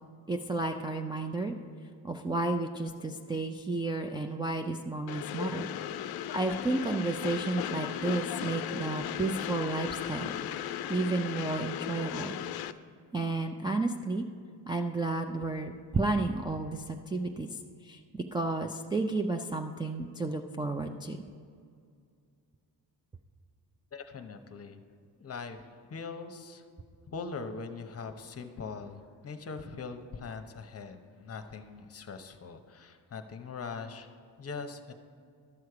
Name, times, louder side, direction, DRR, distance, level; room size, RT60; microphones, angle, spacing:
voice 1, 0.3-1.5 2.0-5.7 6.3-10.3 10.9-12.3 13.1-14.3 14.7-17.5 17.8-21.2, right 2 dB, 10° right, 1 dB, 0.3 m, -32 dB
Train, 5.1-12.7, left 11 dB, 60° left, 0.5 m, -36 dB
voice 2, 23.9-24.8 25.2-26.6 27.1-34.9, left 4 dB, 35° left, 7 dB, 0.8 m, -42 dB
12.0 x 6.4 x 4.8 m, 2.3 s
cardioid pair, 95°, 42 cm